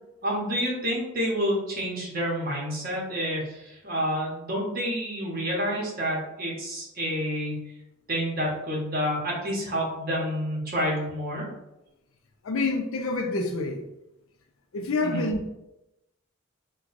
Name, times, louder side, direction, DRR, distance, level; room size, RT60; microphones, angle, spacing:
voice 1, 0.2-7.6 8.1-11.5 15.0-15.2, equal, 45° right, -3 dB, 1.1 m, -29 dB
voice 2, 12.4-13.8 14.7-15.5, left 3 dB, 80° left, 4 dB, 0.5 m, -27 dB
4.5 x 2.2 x 2.6 m, 0.91 s
head